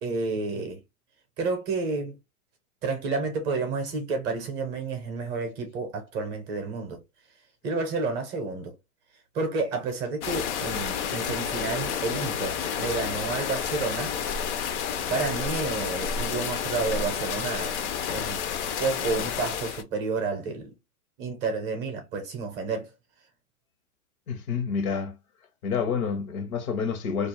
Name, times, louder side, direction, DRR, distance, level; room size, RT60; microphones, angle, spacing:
voice 1, 0.0-0.8 1.4-2.2 2.8-7.0 7.6-8.7 9.3-14.1 15.1-17.8 18.1-18.4 18.8-20.7 21.2-22.9, right 4 dB, 25° right, 0.6 m, -30 dB
sound 1, 10.2-19.8, left 7 dB, 50° left, 0.6 m, -30 dB
voice 2, 24.3-25.2 25.6-27.3, left 6 dB, 70° left, 0.9 m, -28 dB
2.4 x 2.1 x 3.0 m
hypercardioid pair, 135°, 45 cm